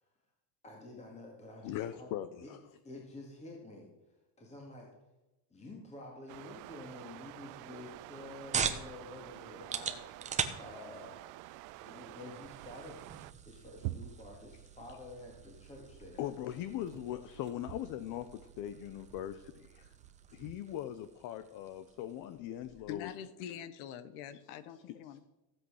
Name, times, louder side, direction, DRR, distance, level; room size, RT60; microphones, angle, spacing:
voice 1, 0.6-2.1 2.4-2.5 2.8-4.9 5.5-11.4 11.8-16.2, left 2 dB, 15° left, -1 dB, 2.1 m, -50 dB
voice 2, 1.6-2.6 16.2-19.9 20.3-23.1 25.1-25.2, left 11 dB, 50° left, 13 dB, 0.7 m, -40 dB
sound 1, 6.3-13.3, right 19 dB, 50° right, 0.4 m, -49 dB
sound 2, 7.9-23.0, right 6 dB, 15° right, 0.9 m, -43 dB
sound 3, 12.4-21.1, right 15 dB, 80° right, 0.8 m, -49 dB
voice 3, 22.9-25.2, left 9 dB, 80° left, 14 dB, 1.3 m, -44 dB
16.0 x 8.0 x 6.4 m, 1.0 s
cardioid pair, 165°, 42 cm